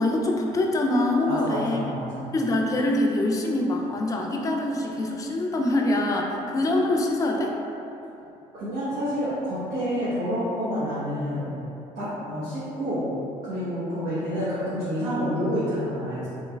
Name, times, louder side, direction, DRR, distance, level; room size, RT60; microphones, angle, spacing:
voice 1, 0.0-1.9 2.3-7.6 10.7-10.8 12.0-12.2, left 1 dB, 25° left, 0 dB, 0.4 m, -24 dB
voice 2, 1.3-2.3 6.2-6.6 8.5-11.5 11.9-13.1 13.4-16.3, equal, 80° right, -13 dB, 0.9 m, -29 dB
3.1 x 3.0 x 2.2 m, 2.8 s
cardioid pair, 90°, 14 cm